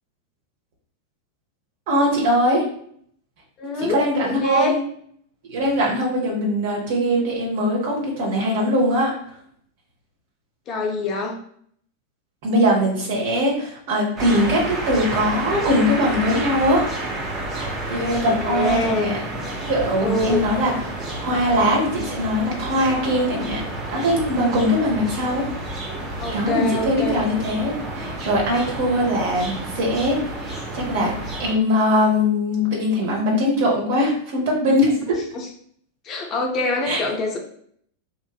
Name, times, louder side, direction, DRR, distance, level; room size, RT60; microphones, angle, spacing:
voice 1, 1.9-2.7 3.8-4.8 5.4-9.1 12.4-16.9 17.9-19.2 19.7-20.7 21.2-23.6 23.9-25.5 26.3-35.2 36.9-37.0, equal, 50° right, -1 dB, 1.0 m, -21 dB
voice 2, 3.6-4.0 4.2-4.8 10.7-11.4 18.4-19.2 20.0-20.4 26.2-27.2 35.3-35.5 36.0-37.4, left 2 dB, 30° left, 1 dB, 0.5 m, -25 dB
sound 1, 14.2-31.5, right 1 dB, 20° right, 0.8 m, -30 dB
3.1 x 2.5 x 2.3 m, 0.64 s
figure-of-eight pair, 90°, 0 cm